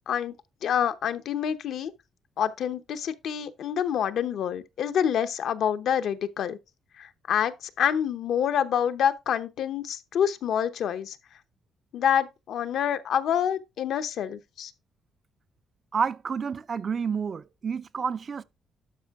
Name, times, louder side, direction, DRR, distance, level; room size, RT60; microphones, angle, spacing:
voice 1, 0.6-1.9 2.4-6.6 7.0-11.2 11.9-14.7, left 9 dB, 70° left, 0.8 m, -27 dB
voice 2, 15.9-18.4, right 6 dB, 45° right, 0.5 m, -29 dB
12.0 x 5.3 x 3.6 m
cardioid pair, 90°, 0 cm